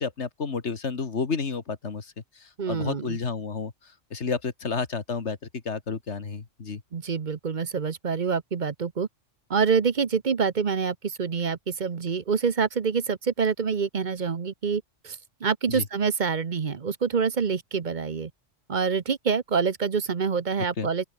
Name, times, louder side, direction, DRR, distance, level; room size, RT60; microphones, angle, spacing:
voice 1, 0.0-5.4 5.7-6.8 15.7-15.8 20.8-20.9, left 5 dB, 65° left, 2.2 m, -31 dB
voice 2, 2.6-3.2 6.9-9.1 9.5-18.3 18.7-21.0, right 5 dB, 40° right, 1.0 m, -26 dB
open air
omnidirectional pair, 1.3 m